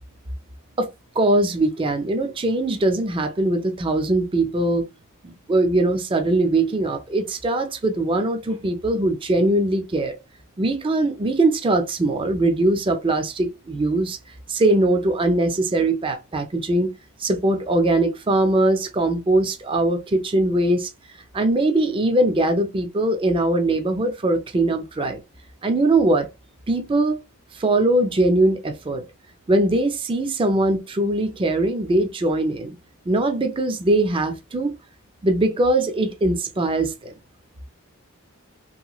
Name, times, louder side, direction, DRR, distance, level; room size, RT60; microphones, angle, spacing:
voice 1, 1.2-4.9 5.2-10.2 10.6-14.2 14.5-16.9 17.2-20.9 21.3-25.2 25.6-26.3 26.7-27.2 27.5-29.0 29.5-32.8 33.1-34.7 35.2-37.1, right 2 dB, 25° right, 0.4 m, -21 dB
3.0 x 2.9 x 2.3 m
head